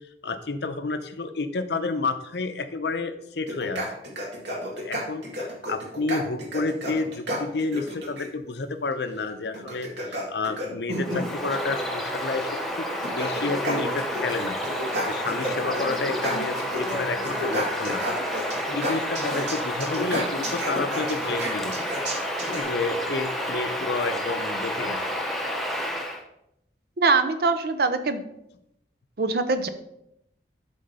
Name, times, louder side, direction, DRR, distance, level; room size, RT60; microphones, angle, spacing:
voice 1, 0.0-3.9 4.7-5.2 5.7-12.9 13.2-14.6 15.1-18.0 18.7-21.7 22.5-25.0, left 3 dB, 75° left, 9 dB, 0.6 m, -30 dB
sound 1, 3.5-8.3 9.5-11.4 12.4-12.5 12.9-14.4 14.6-17.0 17.2-22.6, equal, 80° right, 2.0 m, -31 dB
Bird vocalization bird call bird song, 10.9-26.2, equal, ahead, 0.7 m, -30 dB
voice 2, 27.0-28.2 29.2-29.7, right 4 dB, 60° right, 10 dB, 0.6 m, -23 dB
7.6 x 3.8 x 5.5 m, 0.80 s
head